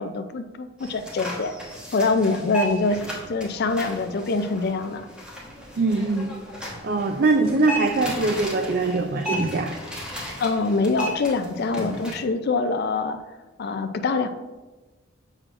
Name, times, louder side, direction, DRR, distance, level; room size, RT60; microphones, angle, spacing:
voice 1, 0.0-1.5 1.9-3.0 3.3-5.0 10.4-13.2 13.6-14.3, left 3 dB, 50° left, 8 dB, 0.4 m, -24 dB
sound 1, 0.8-12.1, equal, 5° right, 1.2 m, -34 dB
voice 2, 5.8-6.3 6.8-9.8, right 3 dB, 50° right, 5 dB, 0.4 m, -22 dB
7.5 x 6.3 x 2.5 m, 1.2 s
head